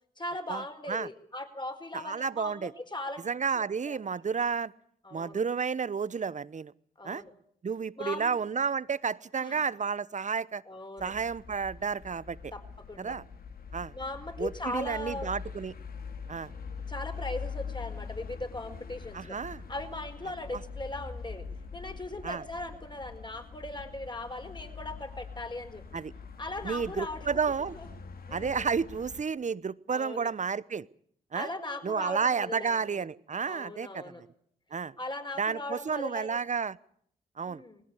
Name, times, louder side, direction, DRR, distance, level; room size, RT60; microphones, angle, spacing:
voice 1, 0.2-3.2 3.5-4.0 5.0-5.4 7.0-7.3 8.0-8.4 9.4-9.6 10.7-11.1 12.5-13.2 13.9-15.3 16.9-19.4 19.7-21.4 21.7-25.8 26.4-27.3 27.7-27.9 28.3-28.7 29.9-30.3 31.3-33.0 33.5-34.2 35.0-36.4 37.4-37.8, left 2 dB, 25° left, 7 dB, 4.8 m, -39 dB
voice 2, 1.9-2.7 3.2-4.7 5.1-6.7 7.0-7.2 7.6-10.6 11.0-12.4 13.0-13.2 13.7-13.9 14.4-15.7 16.3-16.5 19.1-19.6 22.2-22.4 25.9-26.1 26.6-27.7 28.3-30.9 31.3-31.5 31.8-34.1 34.7-34.9 35.4-36.8 37.4-37.6, right 6 dB, 40° right, 19 dB, 1.0 m, -31 dB
sound 1, 11.0-29.2, left 5 dB, 55° left, 2.3 m, -43 dB
20.0 x 17.0 x 9.9 m, 0.64 s
supercardioid pair, 45°, 18 cm